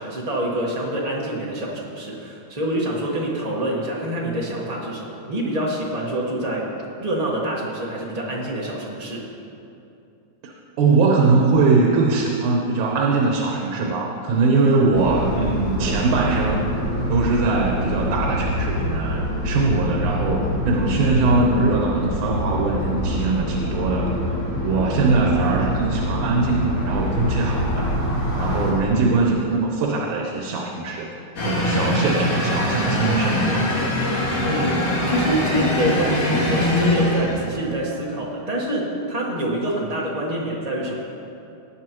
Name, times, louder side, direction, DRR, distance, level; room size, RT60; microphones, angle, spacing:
voice 1, 0.0-6.7 7.0-9.2 34.4-41.0, right 1 dB, 75° right, -4 dB, 0.3 m, -26 dB
voice 2, 10.4-16.6 17.1-24.4 24.6-27.8 28.4-31.1 31.5-33.7, right 3 dB, 90° right, -1 dB, 2.5 m, -21 dB
sound 1, 14.9-28.7, equal, 10° left, 1.8 m, -25 dB
sound 2, 31.4-37.7, left 1 dB, 55° left, 2.7 m, -22 dB
18.5 x 8.9 x 3.0 m, 2.7 s
omnidirectional pair, 3.3 m